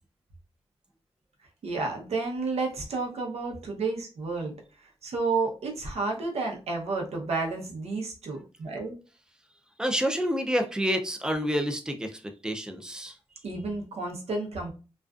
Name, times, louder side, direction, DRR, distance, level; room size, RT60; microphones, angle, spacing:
voice 1, 1.6-9.0 13.4-14.7, right 3 dB, 80° right, 1 dB, 0.7 m, -31 dB
voice 2, 9.8-13.1, equal, 5° right, 4 dB, 0.4 m, -28 dB
2.4 x 2.3 x 2.3 m, 0.34 s
wide cardioid pair, 120°, 11 cm